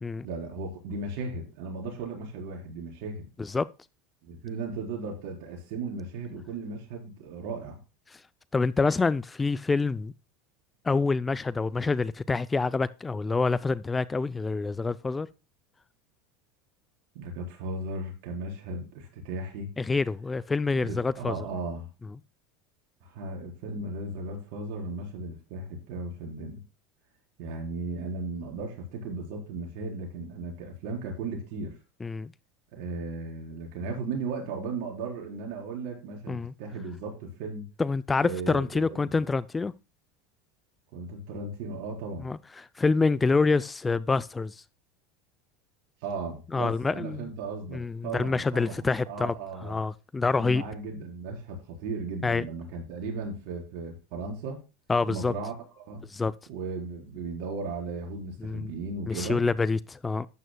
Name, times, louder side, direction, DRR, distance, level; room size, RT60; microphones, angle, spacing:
voice 1, 0.2-3.3 4.2-7.8 17.1-19.7 20.7-21.9 23.0-26.6 27.4-31.7 32.7-37.6 38.2-39.2 40.9-42.3 46.0-49.8 50.4-54.6 55.1-56.0 56.5-59.4, right 3 dB, 65° right, 4.3 m, -36 dB
voice 2, 8.5-10.1 10.8-15.3 19.8-21.4 32.0-32.3 36.3-36.5 37.8-39.7 42.2-44.6 46.5-47.3 47.7-49.3 49.6-50.6 52.2-52.5 54.9-55.3 56.1-56.3 58.4-58.7 59.1-60.3, left 4 dB, 15° left, 0.4 m, -27 dB
12.0 x 9.2 x 2.2 m
supercardioid pair, 110°, 0 cm